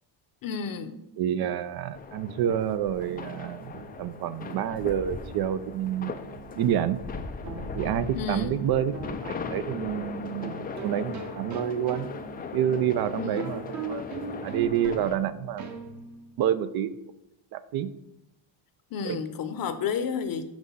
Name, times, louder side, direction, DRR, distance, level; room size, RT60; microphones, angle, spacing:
voice 1, 0.4-1.0 8.1-8.6 13.2-13.6 18.9-20.4, left 6 dB, 45° left, 10 dB, 0.8 m, -31 dB
voice 2, 1.2-6.1 6.6-7.0 7.7-8.9 9.2-12.1 12.5-14.0 14.4-15.8 16.4-17.0 17.5-17.9 19.0-19.2, right 10 dB, 55° right, 13 dB, 0.5 m, -28 dB
sound 1, 1.9-15.2, left 5 dB, 20° left, 0.3 m, -39 dB
sound 2, 2.0-16.3, right 5 dB, 35° right, 0.9 m, -42 dB
6.1 x 5.1 x 5.4 m, 0.87 s
cardioid pair, 130°, 48 cm